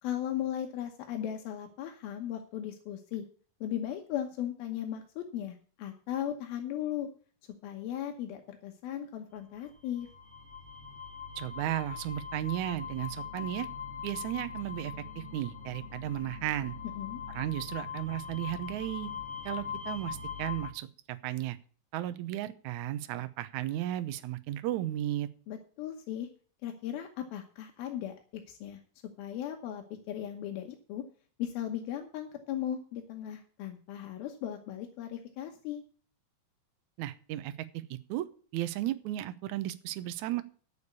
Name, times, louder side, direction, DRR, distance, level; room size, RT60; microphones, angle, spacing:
voice 1, 0.0-3.2 3.6-7.1 7.6-10.1 17.0-17.2 25.5-26.3 26.6-28.1 28.5-28.8 29.2-31.0 31.4-35.8, left 10 dB, 85° left, 3 dB, 2.9 m, -37 dB
sound 1, 9.7-20.7, left 6 dB, 25° left, 1.5 m, -41 dB
voice 2, 11.4-13.7 14.0-16.7 17.4-19.1 19.4-21.6 21.9-25.3 37.0-38.3 38.5-40.4, right 14 dB, 75° right, 11 dB, 1.8 m, -34 dB
9.6 x 7.0 x 8.3 m, 0.42 s
omnidirectional pair, 4.2 m